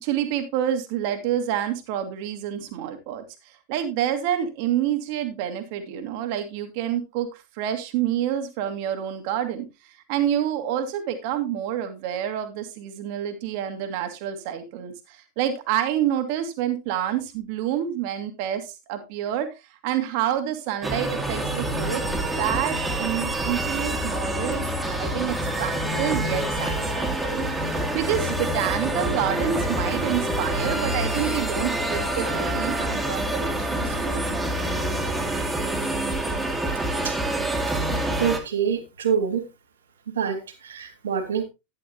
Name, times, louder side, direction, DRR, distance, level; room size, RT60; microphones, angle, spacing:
voice 1, 0.0-34.4, right 10 dB, 45° right, 8 dB, 2.0 m, -28 dB
sound 1, 20.8-38.4, right 1 dB, 5° right, 2.0 m, -26 dB
voice 2, 38.2-39.5 40.1-41.4, right 7 dB, 65° right, 6 dB, 2.2 m, -26 dB
11.0 x 10.5 x 2.8 m, 0.25 s
figure-of-eight pair, 90°, 0 cm